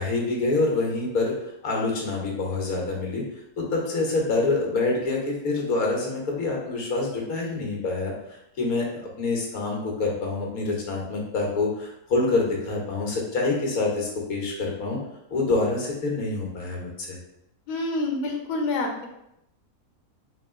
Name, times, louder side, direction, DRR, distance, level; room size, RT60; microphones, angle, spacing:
voice 1, 0.0-1.3 1.6-3.2 3.6-8.9 9.2-15.0 15.3-17.2, left 3 dB, 70° left, -1 dB, 1.5 m, -26 dB
voice 2, 17.7-19.1, left 2 dB, 90° left, 2 dB, 1.2 m, -27 dB
3.5 x 3.2 x 3.6 m, 0.83 s
omnidirectional pair, 1.6 m